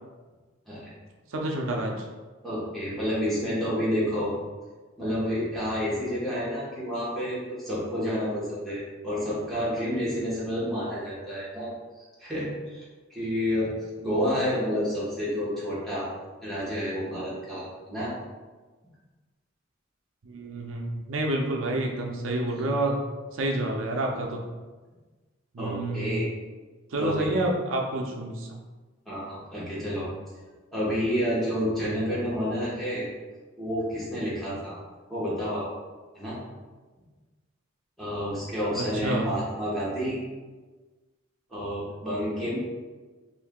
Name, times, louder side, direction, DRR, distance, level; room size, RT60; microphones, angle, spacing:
voice 1, 1.3-2.0 20.2-23.0 23.3-24.4 25.5-26.2 26.9-28.6 38.7-39.3, right 1 dB, 85° right, 1 dB, 0.5 m, -29 dB
voice 2, 2.4-4.3 5.0-11.7 12.2-12.8 13.1-13.7 14.0-16.1 16.4-18.1 22.5-22.7 25.6-26.3 27.0-27.4 29.1-30.1 30.7-33.1 33.6-34.8 35.1-35.7 36.1-36.4 38.0-40.2 41.5-42.6, equal, ahead, -9 dB, 1.1 m, -29 dB
2.7 x 2.6 x 3.6 m, 1.3 s
head